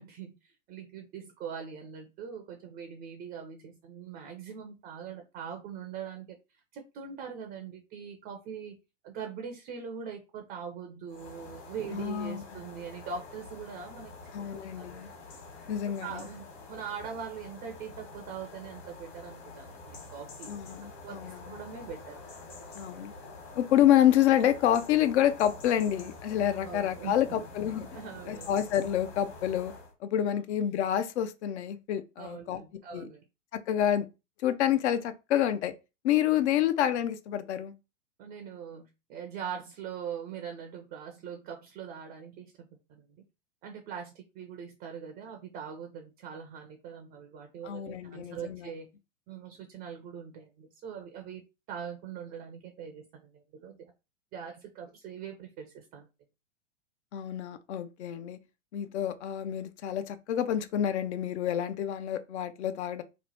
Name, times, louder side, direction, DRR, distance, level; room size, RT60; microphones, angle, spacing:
voice 1, 0.0-6.4 6.7-8.7 9.0-14.1 14.5-15.1 15.8-20.6 21.0-22.2 26.6-27.5 27.9-28.5 32.2-33.2 38.2-43.2 43.6-48.9 49.3-51.4 51.7-53.9 54.3-56.1, right 7 dB, 25° right, 0.4 m, -42 dB
sound 1, 11.1-29.9, left 3 dB, 50° left, 1.4 m, -47 dB
voice 2, 11.9-12.4 14.3-15.1 15.7-16.2 20.5-21.4 22.7-23.1 23.6-27.9 28.3-29.7 30.0-32.6 32.9-33.1 33.7-34.1 34.4-35.7 36.0-37.7 47.6-48.7 57.1-58.4 58.7-63.0, left 11 dB, 65° left, 0.6 m, -28 dB
3.0 x 2.1 x 4.0 m
hypercardioid pair, 120°, 37 cm